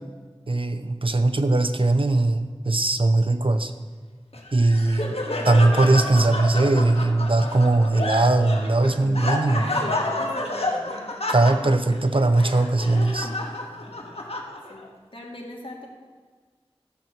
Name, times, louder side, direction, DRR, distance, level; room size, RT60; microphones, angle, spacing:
voice 1, 0.5-3.7 4.5-5.1 5.4-9.6 11.3-13.3, right 2 dB, 55° right, 9 dB, 0.8 m, -20 dB
Laughter, 4.3-14.9, left 1 dB, 70° left, 1.3 m, -30 dB
voice 2, 9.5-11.2 14.7-15.9, left 1 dB, 55° left, -3 dB, 2.4 m, -38 dB
13.5 x 6.1 x 7.2 m, 1.5 s
wide cardioid pair, 40°, 10 cm